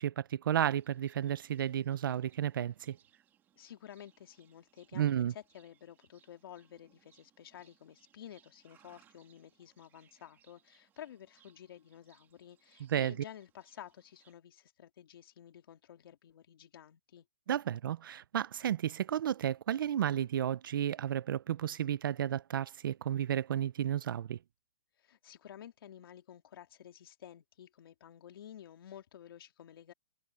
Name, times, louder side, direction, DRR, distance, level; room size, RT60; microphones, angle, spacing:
voice 1, 0.0-3.0 4.9-5.3 12.9-13.2 17.5-24.4, right 10 dB, 45° right, 0.5 m, -32 dB
Livestock farm animals working animals, 0.6-14.3, right 10 dB, 15° right, 2.6 m, -69 dB
voice 2, 3.6-17.3 25.0-29.9, left 10 dB, 50° left, 2.7 m, -52 dB
hypercardioid pair, 170°, 15 cm